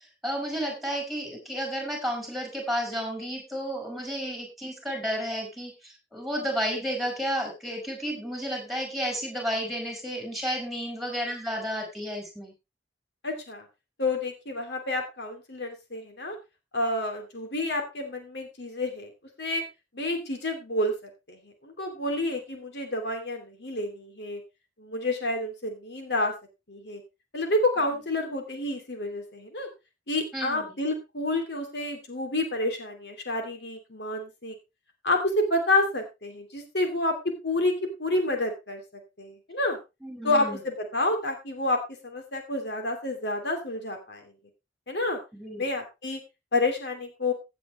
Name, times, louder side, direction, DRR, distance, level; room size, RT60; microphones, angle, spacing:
voice 1, 0.2-12.5 30.3-30.7 40.0-40.6 45.3-45.6, equal, ahead, 2 dB, 5.4 m, -32 dB
voice 2, 13.2-13.6 14.0-16.4 16.7-19.1 19.4-19.6 19.9-20.9 21.3-21.4 21.6-24.4 24.8-26.3 26.7-27.0 27.3-29.7 30.1-34.5 35.0-37.1 37.4-37.7 38.0-38.8 39.2-39.8 40.2-44.3 44.9-45.2 45.6-46.2 46.5-47.3, left 2 dB, 75° left, 4 dB, 2.9 m, -29 dB
16.5 x 8.4 x 3.3 m, 0.26 s
head